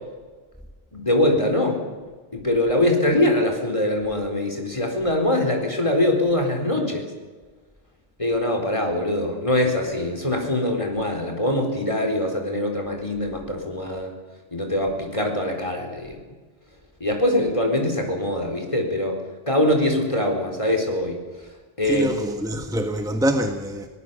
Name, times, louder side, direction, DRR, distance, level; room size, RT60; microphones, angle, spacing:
voice 1, 0.9-1.8 2.3-7.0 8.2-14.1 14.5-16.2 17.0-19.2 19.5-21.2 21.8-22.1, left 1 dB, 30° left, 4.3 m, -23 dB
voice 2, 21.8-23.9, equal, 5° right, 1.5 m, -25 dB
24.0 x 19.5 x 7.0 m
omnidirectional pair, 1.1 m